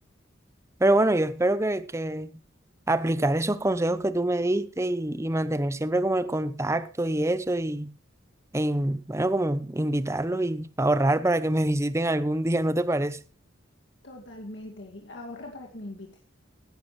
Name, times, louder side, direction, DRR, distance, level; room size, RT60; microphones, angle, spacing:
voice 1, 0.8-2.3 2.9-7.9 8.5-13.2, right 1 dB, 15° right, 0.7 m, -25 dB
voice 2, 14.0-16.2, left 1 dB, 65° left, 2.2 m, -41 dB
16.5 x 11.0 x 3.1 m
head